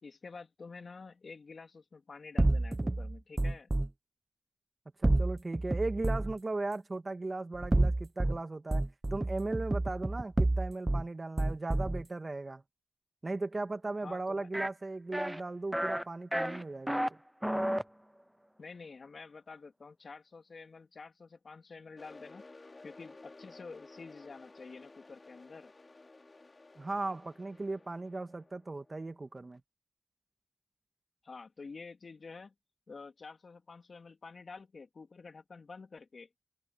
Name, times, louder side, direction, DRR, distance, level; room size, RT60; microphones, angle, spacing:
voice 1, 0.0-3.7 14.0-14.5 18.6-22.4 22.8-25.7 31.2-32.5 32.9-36.3, left 4 dB, 65° left, 2.6 m, -49 dB
sound 1, 2.4-3.9 5.0-6.4 7.5-8.4 8.7-11.0 11.4-12.0, right 2 dB, 25° right, 1.2 m, -29 dB
voice 2, 5.0-8.8 9.1-12.6 13.2-17.2 26.8-29.6, right 2 dB, 45° right, 1.9 m, -37 dB
sound 2, 14.5-14.7 15.1-15.4 15.7-16.0 16.3-17.1 17.4-17.8, equal, 5° right, 0.6 m, -32 dB
sound 3, 22.0-29.6, left 3 dB, 45° left, 3.7 m, -55 dB
cardioid pair, 45°, 0 cm